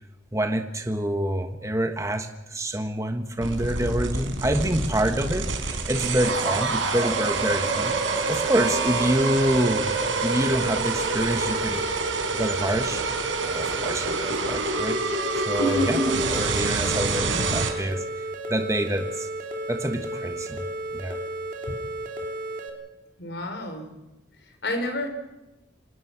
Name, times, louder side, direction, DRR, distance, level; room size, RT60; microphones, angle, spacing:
voice 1, 0.3-9.9 10.2-11.8 12.3-13.0 13.5-15.0 15.4-16.0 16.3-19.3 19.7-20.6 20.9-21.2, right 1 dB, 15° right, 6 dB, 1.4 m, -27 dB
sound 1, 3.4-17.7, right 3 dB, 85° right, 4.4 m, -26 dB
sound 2, 14.7-22.7, right 1 dB, 40° right, 3.0 m, -33 dB
voice 2, 15.6-16.1 17.2-17.6 23.2-23.9 24.6-25.1, left 1 dB, 60° left, 6 dB, 4.7 m, -28 dB
27.0 x 19.5 x 6.1 m, 0.99 s
head